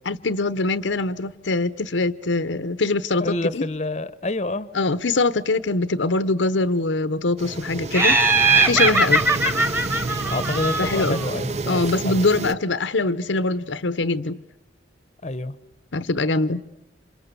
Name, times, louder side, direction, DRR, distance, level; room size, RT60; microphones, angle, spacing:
voice 1, 0.1-3.7 4.7-8.2 8.7-9.2 10.8-11.2 11.7-14.4 15.9-16.6, left 3 dB, 80° left, 0.9 m, -23 dB
voice 2, 3.2-4.7 10.3-12.3 15.2-15.6, left 2 dB, 35° left, 0.9 m, -28 dB
sound 1, 7.4-12.5, right 3 dB, 35° right, 0.9 m, -30 dB
Laughter, 7.9-11.2, right 3 dB, 10° right, 1.7 m, -20 dB
28.0 x 27.0 x 6.9 m
head